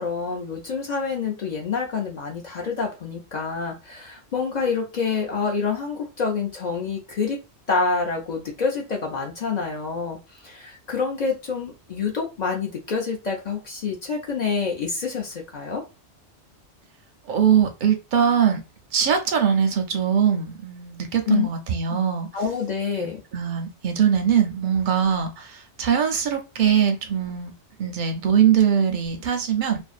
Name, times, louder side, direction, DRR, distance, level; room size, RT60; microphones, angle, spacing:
voice 1, 0.0-7.4 7.7-15.8 21.3-21.5 21.9-22.0 22.3-23.2, left 5 dB, 50° left, 0.5 m, -27 dB
voice 2, 17.3-18.6 18.9-22.3 23.0-23.1 23.3-27.5 27.8-29.8, right 8 dB, 55° right, 0.6 m, -21 dB
2.5 x 2.2 x 2.4 m
omnidirectional pair, 1.2 m